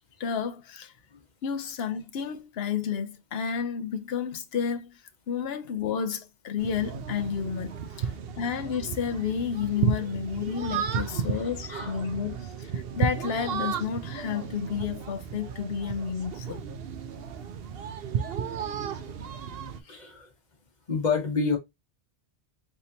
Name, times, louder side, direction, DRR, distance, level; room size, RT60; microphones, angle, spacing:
voice 1, 0.2-0.9 1.4-5.0 5.3-8.1 8.4-16.6, left 7 dB, 70° left, 0.9 m, -31 dB
sound 1, 6.6-19.8, right 7 dB, 65° right, 0.8 m, -33 dB
voice 2, 11.1-11.9 18.9-19.0 19.8-20.3 20.9-21.6, left 5 dB, 40° left, 1.3 m, -29 dB
4.3 x 3.4 x 2.7 m
omnidirectional pair, 1.1 m